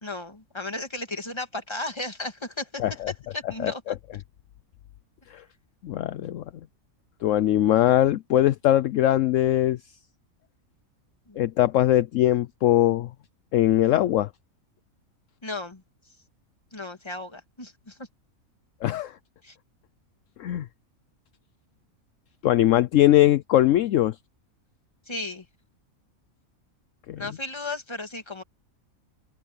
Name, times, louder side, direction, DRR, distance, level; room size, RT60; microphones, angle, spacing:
voice 1, 0.0-2.8 3.3-3.8 11.3-11.4 15.4-15.8 16.7-17.9 19.4-19.5 25.1-25.4 27.2-28.4, left 2 dB, 20° left, 2.1 m, -34 dB
voice 2, 2.8-3.1 3.6-3.9 5.3-5.4 5.8-6.4 7.2-9.8 11.4-13.1 13.5-14.3 18.8-19.1 20.4-20.6 22.4-24.1 27.1-27.2, left 13 dB, 70° left, 0.9 m, -21 dB
omnidirectional pair, 1.5 m